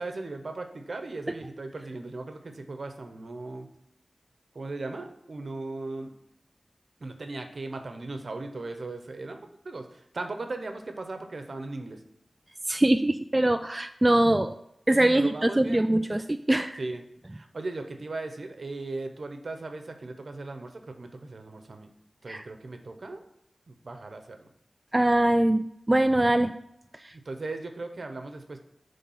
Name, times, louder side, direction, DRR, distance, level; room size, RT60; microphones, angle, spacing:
voice 1, 0.0-3.7 4.5-6.2 7.0-12.0 15.1-15.8 16.8-17.0 17.3-21.9 22.2-23.3 23.7-24.5 27.2-28.6, right 2 dB, 60° right, 6 dB, 1.0 m, -37 dB
voice 2, 12.7-14.6 14.9-16.8 22.3-22.4 24.9-26.5, right 1 dB, 20° right, 8 dB, 0.3 m, -23 dB
10.0 x 3.6 x 5.6 m, 0.79 s
wide cardioid pair, 70°, 0 cm